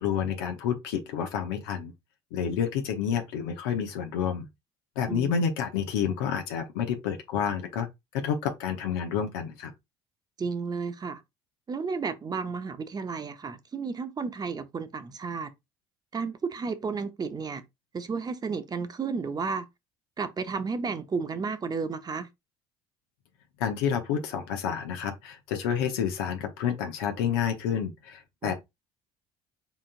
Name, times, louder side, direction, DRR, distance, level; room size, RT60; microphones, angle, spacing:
voice 1, 0.0-1.9 2.3-4.5 5.0-7.9 8.1-9.7 23.6-28.5, left 8 dB, 75° left, 0.9 m, -29 dB
voice 2, 5.1-5.4 10.4-11.2 11.7-15.5 16.1-17.6 17.9-19.7 20.2-22.3 28.4-28.5, right 5 dB, 30° right, 0.8 m, -32 dB
4.1 x 3.8 x 2.4 m
hypercardioid pair, 65°, 13 cm